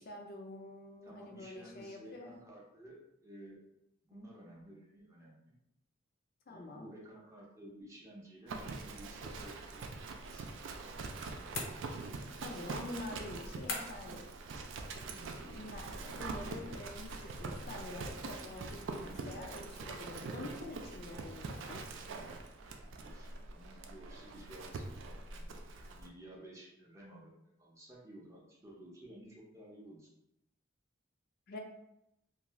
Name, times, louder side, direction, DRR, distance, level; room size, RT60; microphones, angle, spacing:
voice 1, 0.0-2.3 4.1-4.3 6.5-6.9 12.4-14.2 15.4-21.8 31.5-31.6, left 2 dB, 50° left, 1 dB, 0.4 m, -47 dB
voice 2, 1.0-3.6 4.1-5.5 6.5-10.5 15.1-15.3 23.0-24.8 25.3-25.6 25.9-27.3 27.6-30.1, right 1 dB, 15° right, -3 dB, 0.5 m, -53 dB
Livestock farm animals working animals, 8.5-26.1, right 3 dB, 80° right, 0.3 m, -44 dB
sound 1, 11.5-12.3 13.7-14.2, left 3 dB, 90° left, 0.6 m, -41 dB
2.5 x 2.3 x 3.0 m, 0.84 s
head